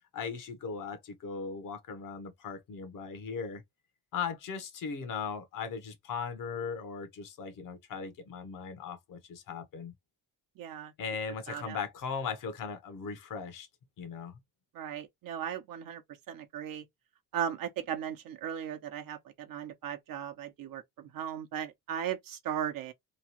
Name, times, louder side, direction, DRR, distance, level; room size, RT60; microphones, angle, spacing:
voice 1, 0.1-3.6 4.1-9.9 11.0-13.7 14.0-14.4, left 5 dB, 55° left, 0.9 m, -38 dB
voice 2, 10.6-10.9 11.5-11.8 14.7-16.0 16.3-16.8 17.3-22.9, right 9 dB, 60° right, 0.7 m, -37 dB
3.0 x 2.3 x 2.9 m
cardioid pair, 130°, 39 cm